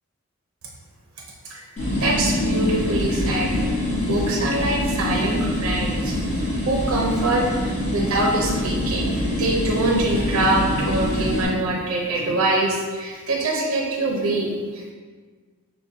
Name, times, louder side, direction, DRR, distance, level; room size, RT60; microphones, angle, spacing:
sound 1, 1.8-11.5, left 1 dB, 30° left, 1.0 m, -24 dB
voice 1, 2.0-3.6 3.9-7.5 7.9-14.9, right 2 dB, 70° right, -1 dB, 0.5 m, -24 dB
6.4 x 2.1 x 2.6 m, 1.5 s
head